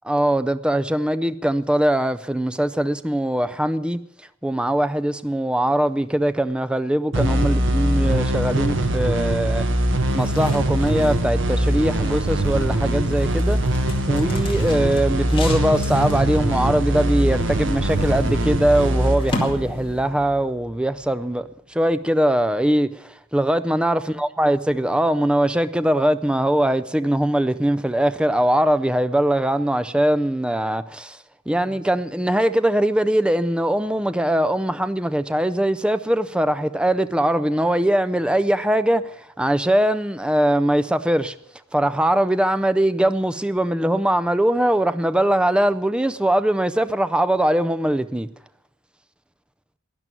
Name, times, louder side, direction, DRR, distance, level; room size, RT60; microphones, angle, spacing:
voice 1, 0.0-4.0 4.4-9.6 10.1-13.7 14.1-31.2 31.5-41.3 41.7-48.3, right 1 dB, 5° right, 0.4 m, -21 dB
sound 1, 7.1-20.4, right 1 dB, 65° right, 1.4 m, -22 dB
sound 2, 9.9-20.3, left 2 dB, 25° left, 2.2 m, -36 dB
12.0 x 10.5 x 9.1 m
head